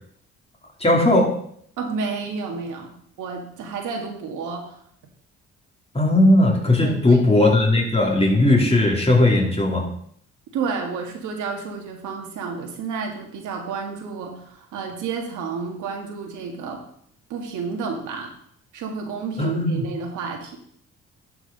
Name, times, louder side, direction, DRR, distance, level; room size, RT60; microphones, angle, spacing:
voice 1, 0.8-1.3 5.9-9.9 19.4-19.8, left 2 dB, 20° left, 0 dB, 2.8 m, -17 dB
voice 2, 1.8-4.8 6.8-7.2 10.5-16.8 17.3-18.3 18.7-20.6, right 5 dB, 85° right, 2 dB, 2.0 m, -31 dB
11.5 x 4.9 x 5.3 m, 0.65 s
cardioid pair, 90°, 30 cm